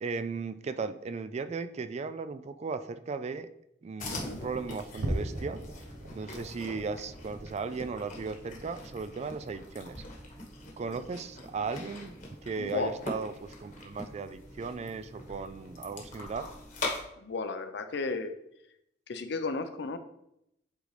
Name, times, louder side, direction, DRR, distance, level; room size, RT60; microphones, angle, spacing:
voice 1, 0.0-3.5 3.8-5.6 6.1-10.0 10.8-12.2 12.4-16.5, right 4 dB, 35° right, 11 dB, 0.3 m, -36 dB
sound 1, 4.0-17.0, left 2 dB, 45° left, 1.3 m, -42 dB
voice 2, 4.1-4.4 12.6-13.0 17.2-18.3 19.1-20.0, left 3 dB, 65° left, 8 dB, 0.6 m, -34 dB
sound 2, 4.9-11.6 12.0-12.2 12.7-12.8 13.4-13.5, right 1 dB, 75° right, 0.8 m, -41 dB
8.2 x 3.8 x 3.2 m, 0.78 s
head